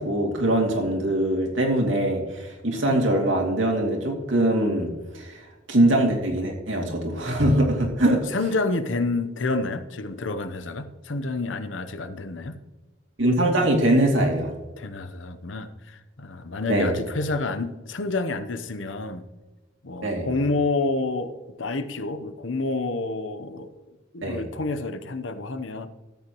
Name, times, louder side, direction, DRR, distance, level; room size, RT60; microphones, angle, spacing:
voice 1, 0.0-8.2 13.2-14.5 16.7-16.9 20.0-20.3 24.2-24.4, right 1 dB, 80° right, 1 dB, 2.6 m, -22 dB
voice 2, 8.3-12.6 14.8-19.2 19.8-25.9, left 3 dB, 75° left, 11 dB, 0.9 m, -29 dB
13.5 x 9.0 x 3.1 m, 1.2 s
head